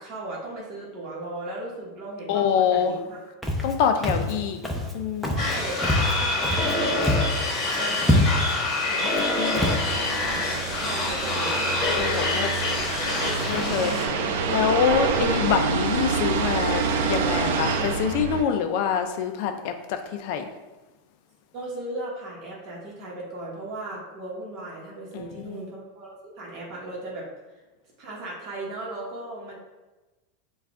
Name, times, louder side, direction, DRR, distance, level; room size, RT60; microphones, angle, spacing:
voice 1, 0.0-3.2 5.3-7.1 7.8-9.8 10.3-11.8 21.5-27.3 28.0-29.6, right 2 dB, 40° right, -4 dB, 1.1 m, -37 dB
voice 2, 2.3-2.9 3.6-4.6 4.9-5.4 9.0-9.1 9.4-9.6 12.0-12.5 13.5-14.0 14.5-20.4 25.1-25.6, left 7 dB, 55° left, 7 dB, 0.4 m, -25 dB
Walk footsteps, 3.4-3.7 4.0-4.3 4.6-4.9 5.2-5.6 5.8-6.7 7.0-7.4 7.7-7.8 8.0-8.6 9.1-9.2 9.5-9.8, left 1 dB, 5° left, 0.6 m, -24 dB
sound 1, 5.4-14.1, left 2 dB, 30° left, 1.2 m, -26 dB
sound 2, 9.7-18.4, right 4 dB, 75° right, 0.5 m, -27 dB
5.7 x 2.3 x 3.6 m, 1.1 s
supercardioid pair, 150°, 0 cm